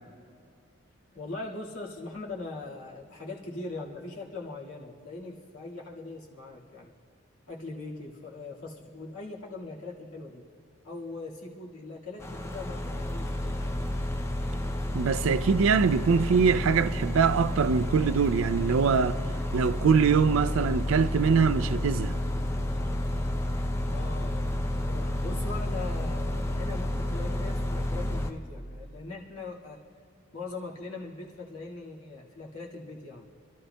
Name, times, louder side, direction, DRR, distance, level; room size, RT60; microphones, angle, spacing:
voice 1, 1.1-6.9 7.5-10.4 10.8-13.8 23.8-29.8 30.3-33.3, left 3 dB, 85° left, 1.8 m, -41 dB
sound 1, 12.2-28.3, left 1 dB, 10° left, 0.4 m, -30 dB
voice 2, 14.9-19.2 19.5-22.1, right 5 dB, 70° right, 0.4 m, -23 dB
28.0 x 12.5 x 2.2 m
head